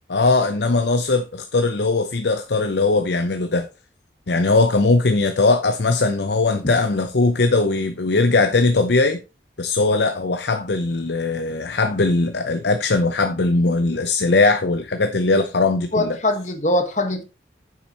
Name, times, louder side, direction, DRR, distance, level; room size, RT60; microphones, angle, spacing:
voice 1, 0.1-3.7 4.3-9.2 9.6-16.2, left 3 dB, 75° left, 0.7 m, -20 dB
voice 2, 15.9-17.2, left 1 dB, 40° left, 1.5 m, -22 dB
9.8 x 7.6 x 3.0 m
head